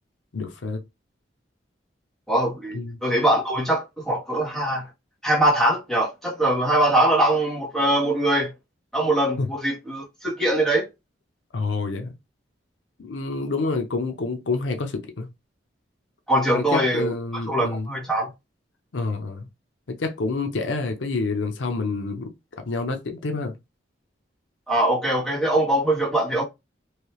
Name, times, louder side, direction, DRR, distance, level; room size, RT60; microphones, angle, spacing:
voice 1, 0.3-0.8 2.7-3.0 9.4-9.5 11.5-12.1 13.0-15.3 16.5-17.9 18.9-19.5 19.9-22.3 22.6-23.5, left 3 dB, 85° left, 0.6 m, -28 dB
voice 2, 2.3-4.9 5.2-8.5 8.9-10.9 16.3-18.3 24.7-26.4, right 1 dB, ahead, 1.3 m, -22 dB
3.2 x 2.7 x 2.9 m
head